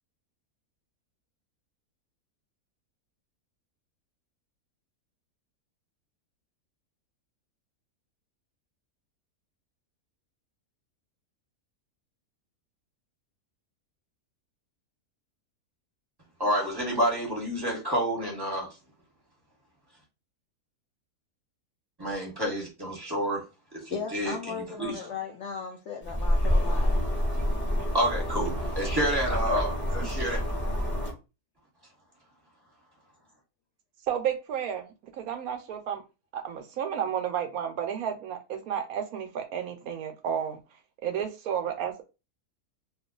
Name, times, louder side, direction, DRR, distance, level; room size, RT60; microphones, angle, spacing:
voice 1, 16.4-18.7 22.0-23.5 23.7-24.9 27.9-30.4, right 1 dB, 15° right, 1.2 m, -29 dB
voice 2, 23.9-27.0, left 6 dB, 65° left, 0.7 m, -36 dB
sound 1, 26.0-31.1, equal, 10° left, 0.9 m, -27 dB
voice 3, 34.1-34.9 35.1-36.0 36.3-40.6 41.0-42.0, right 8 dB, 75° right, 1.0 m, -32 dB
2.6 x 2.4 x 3.7 m
omnidirectional pair, 1.6 m